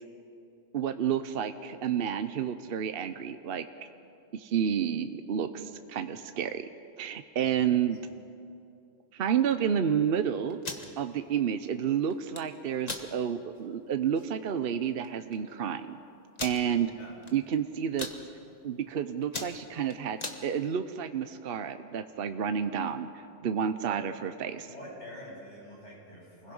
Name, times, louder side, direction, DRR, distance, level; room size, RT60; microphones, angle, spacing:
voice 1, 0.7-3.7 4.3-6.7 7.0-8.0 9.1-10.6 11.0-16.0 16.4-16.9 17.3-18.1 18.6-24.7, right 8 dB, 60° right, 9 dB, 0.9 m, -30 dB
sound 1, 10.5-10.9 12.1-12.4 12.8-13.1 13.6-13.7 14.0-14.3 15.0-15.1 15.3-15.4 16.4-16.6 17.2-17.5 17.8-18.2 18.7-18.9 19.2-20.4, left 3 dB, 35° left, 1.6 m, -37 dB
voice 2, 24.6-26.5, equal, 85° left, -5 dB, 8.4 m, -46 dB
28.5 x 21.0 x 5.5 m, 2.6 s
omnidirectional pair, 1.2 m